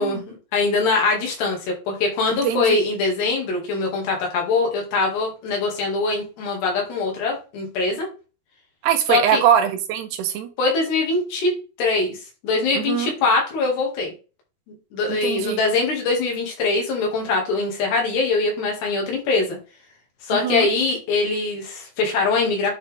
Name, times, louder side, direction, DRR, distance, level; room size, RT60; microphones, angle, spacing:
voice 1, 0.0-8.1 9.1-9.4 10.6-11.5 11.8-12.2 12.4-14.1 14.9-19.6 20.2-22.7, left 3 dB, 90° left, 0 dB, 4.5 m, -22 dB
voice 2, 2.4-2.8 8.8-10.5 12.8-13.1 15.1-15.6 20.3-20.7, right 9 dB, 90° right, 6 dB, 3.2 m, -22 dB
9.9 x 4.2 x 3.6 m, 0.33 s
omnidirectional pair, 4.6 m